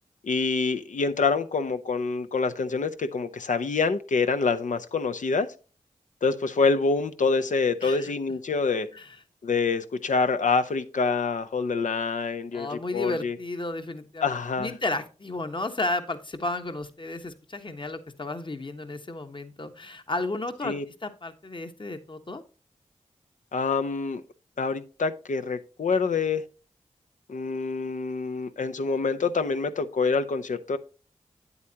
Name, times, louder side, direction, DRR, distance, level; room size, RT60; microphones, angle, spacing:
voice 1, 0.2-5.5 6.2-8.9 9.4-13.4 14.2-14.7 20.6-20.8 23.5-24.2 24.6-26.4 27.3-30.8, left 4 dB, 75° left, 0.7 m, -26 dB
voice 2, 7.8-8.1 8.9-9.2 12.5-14.2 14.6-20.7 21.0-22.4, left 2 dB, 40° left, 1.2 m, -33 dB
8.7 x 8.1 x 2.9 m
cardioid pair, 45°, 13 cm